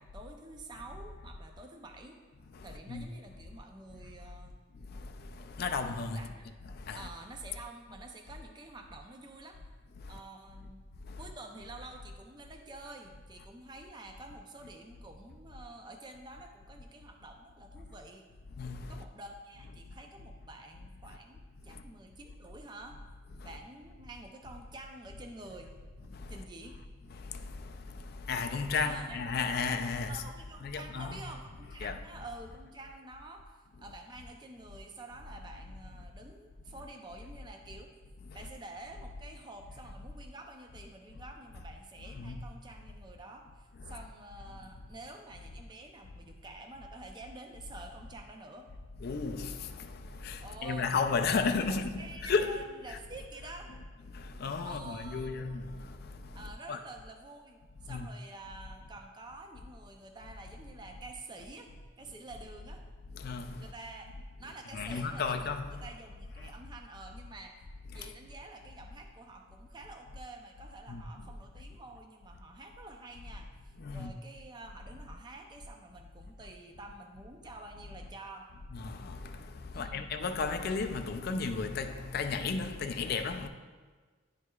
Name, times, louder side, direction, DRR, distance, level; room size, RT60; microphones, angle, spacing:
voice 1, 0.0-2.2 2.6-4.6 6.1-6.5 6.9-9.6 10.1-10.8 11.2-18.3 18.9-23.0 23.4-25.7 26.3-26.8 28.8-29.2 30.0-37.9 38.3-48.7 50.4-50.9 51.2-51.4 51.7-53.7 54.6-55.4 56.3-61.7 62.0-62.8 63.6-64.1 64.4-65.5 65.8-67.6 67.9-78.5 79.7-80.1, right 2 dB, 20° right, 0.4 m, -49 dB
voice 2, 2.5-3.1 4.7-6.3 6.6-7.1 10.0-10.2 11.1-11.2 18.6-19.0 21.7-21.8 23.4-23.5 26.1-26.4 27.1-30.3 30.6-31.4 31.8-32.0 38.3-38.4 42.1-42.4 43.8-44.0 49.0-53.0 54.1-56.8 57.9-58.1 63.1-63.7 64.7-65.9 66.4-66.5 67.9-68.1 70.9-71.3 73.8-74.1 78.7-83.5, left 4 dB, 45° left, 0.4 m, -35 dB
11.0 x 4.7 x 2.3 m
head